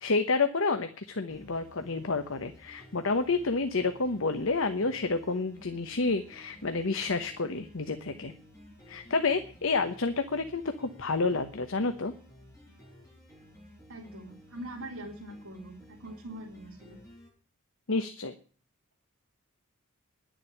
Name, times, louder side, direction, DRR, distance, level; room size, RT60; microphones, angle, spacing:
voice 1, 0.0-8.3 8.9-12.1 17.9-18.3, left 3 dB, 65° left, 8 dB, 1.0 m, -29 dB
sound 1, 1.3-17.3, equal, 15° left, 7.0 m, -54 dB
voice 2, 13.9-17.0, right 1 dB, 85° right, -4 dB, 3.3 m, -43 dB
11.0 x 7.5 x 9.7 m, 0.40 s
head